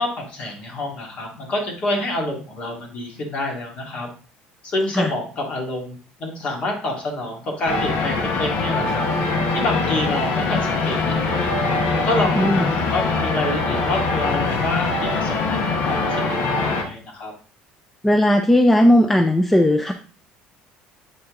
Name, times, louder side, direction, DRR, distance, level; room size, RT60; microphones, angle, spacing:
voice 1, 0.0-4.1 4.6-9.1 9.5-11.5 12.0-17.3, left 1 dB, 40° left, 1 dB, 2.2 m, -27 dB
sound 1, 7.7-16.8, left 3 dB, 65° left, 1.4 m, -22 dB
voice 2, 12.3-12.7 18.0-19.9, left 1 dB, 5° left, 6 dB, 0.5 m, -16 dB
7.6 x 4.3 x 3.7 m, 0.39 s
cardioid pair, 140°, 3 cm